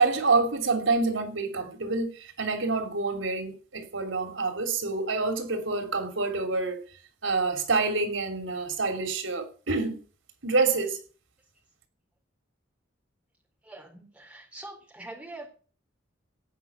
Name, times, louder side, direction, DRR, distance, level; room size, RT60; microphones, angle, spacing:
voice 1, 0.0-6.8 7.2-10.0 10.4-11.0, right 3 dB, 85° right, 3.0 m, -27 dB
voice 2, 13.6-15.5, right 2 dB, 5° right, 3.8 m, -44 dB
17.5 x 5.9 x 8.3 m
head